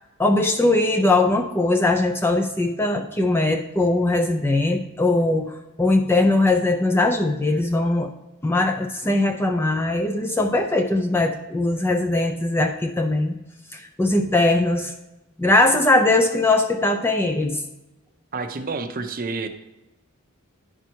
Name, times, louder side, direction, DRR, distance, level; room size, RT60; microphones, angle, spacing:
voice 1, 0.2-8.1 8.4-13.4 13.7-14.9 15.4-17.6, left 2 dB, 10° left, 5 dB, 0.3 m, -20 dB
voice 2, 18.3-19.5, right 3 dB, 40° right, 8 dB, 0.6 m, -29 dB
10.0 x 4.5 x 4.4 m, 0.98 s
head